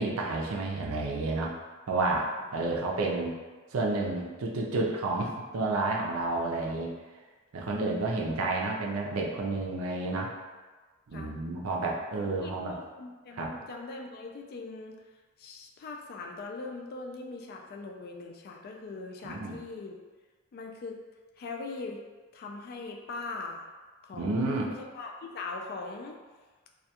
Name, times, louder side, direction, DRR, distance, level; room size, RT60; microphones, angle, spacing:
voice 1, 0.0-1.5 1.9-2.3 2.5-3.3 3.7-6.9 7.5-10.3 11.1-12.7 13.4-13.5 19.2-19.6 24.1-24.7, right 2 dB, 75° right, -1 dB, 0.5 m, -30 dB
voice 2, 12.4-15.0 15.4-20.0 20.5-21.0 21.4-22.0 22.3-23.7 24.0-26.2, left 3 dB, 45° left, 1 dB, 0.3 m, -41 dB
2.3 x 2.2 x 2.8 m, 1.3 s
head